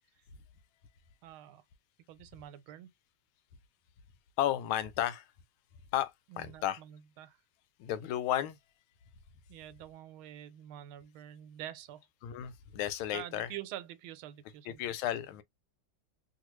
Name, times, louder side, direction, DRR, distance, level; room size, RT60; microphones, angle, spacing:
voice 1, 1.2-1.6 2.1-2.9 6.3-7.4 9.5-12.1 13.1-15.0, right 12 dB, 90° right, 1.4 m, -46 dB
voice 2, 4.4-5.3 5.9-6.8 7.8-8.6 12.2-13.6 14.6-15.4, left 12 dB, 90° left, 1.4 m, -33 dB
3.1 x 2.4 x 3.0 m
omnidirectional pair, 2.2 m